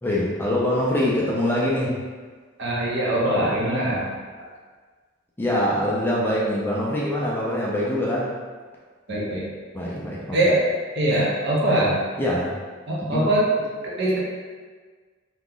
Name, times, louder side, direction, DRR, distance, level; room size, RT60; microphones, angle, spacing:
voice 1, 0.0-2.0 5.4-8.3 9.7-10.5 12.2-12.5 13.1-13.3, left 1 dB, 10° left, -5 dB, 0.4 m, -24 dB
voice 2, 2.6-4.1 9.1-9.4 10.3-10.6 10.9-12.0 12.9-13.4 14.0-14.2, right 1 dB, 55° right, -5 dB, 0.8 m, -22 dB
2.9 x 2.3 x 3.7 m, 1.5 s
head